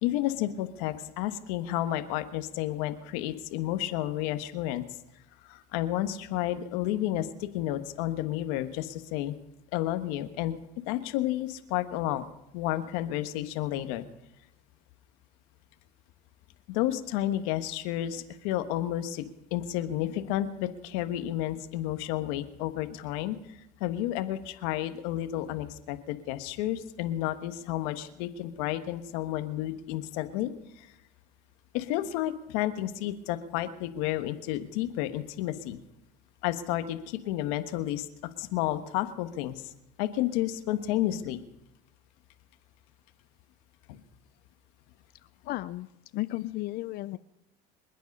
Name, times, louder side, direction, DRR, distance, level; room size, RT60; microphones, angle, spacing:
voice 1, 0.0-4.8 5.5-9.4 9.7-10.6 10.9-12.2 12.5-14.0 16.7-30.9 31.7-35.8 36.4-38.1 38.4-39.7 40.0-41.4 43.9-44.0, left 13 dB, 80° left, 9 dB, 1.3 m, -31 dB
voice 2, 45.4-45.9 46.1-47.2, left 18 dB, 55° left, 14 dB, 0.5 m, -33 dB
26.5 x 9.3 x 5.4 m, 0.86 s
supercardioid pair, 115°, 19 cm